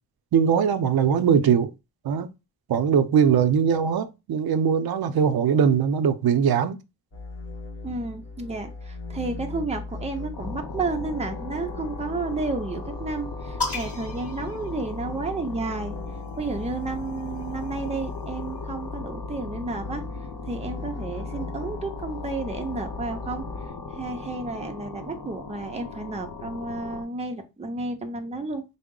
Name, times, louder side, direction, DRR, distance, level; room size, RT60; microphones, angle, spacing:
voice 1, 0.3-1.7 2.0-2.3 2.7-6.8, right 7 dB, 80° right, 0.5 m, -21 dB
sound 1, 7.1-23.7, left 3 dB, 40° left, 1.0 m, -37 dB
voice 2, 7.8-16.0 16.4-20.0 20.4-23.4 23.9-28.6, right 3 dB, 20° right, 0.5 m, -32 dB
sound 2, 10.3-27.0, left 4 dB, 80° left, 0.8 m, -39 dB
sound 3, 13.6-15.4 16.5-18.2, left 4 dB, 20° left, 2.3 m, -36 dB
3.7 x 2.0 x 3.6 m
wide cardioid pair, 175°, 36 cm